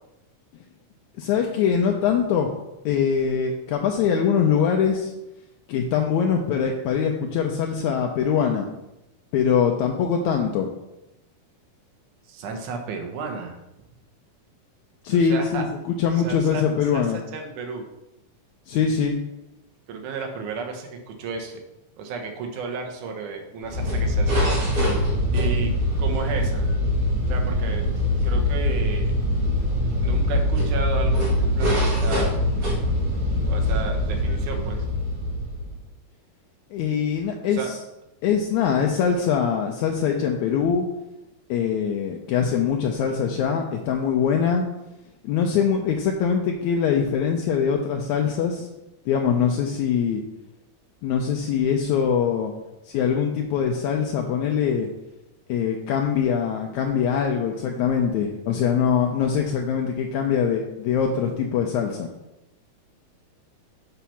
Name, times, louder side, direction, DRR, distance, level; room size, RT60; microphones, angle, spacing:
voice 1, 1.2-2.5 2.9-5.1 5.7-8.7 9.3-10.7 15.0-17.2 18.7-19.2 36.7-37.8 38.2-40.9 41.5-44.7 45.2-48.7 49.1-50.2 51.0-52.5 52.9-54.9 55.5-62.1, left 7 dB, 80° left, 2 dB, 1.9 m, -23 dB
voice 2, 12.3-13.6 15.2-15.6 16.2-16.6 16.9-17.1 17.3-17.9 19.9-21.6 22.0-24.6 25.3-25.7 26.0-26.7 27.3-27.8 28.2-29.1 30.0-32.3 33.5-34.8 37.5-37.7, right 4 dB, 75° right, 3 dB, 2.5 m, -33 dB
sound 1, 23.6-35.8, left 1 dB, 50° right, 2.4 m, -23 dB
6.2 x 5.8 x 5.6 m, 0.93 s
omnidirectional pair, 3.7 m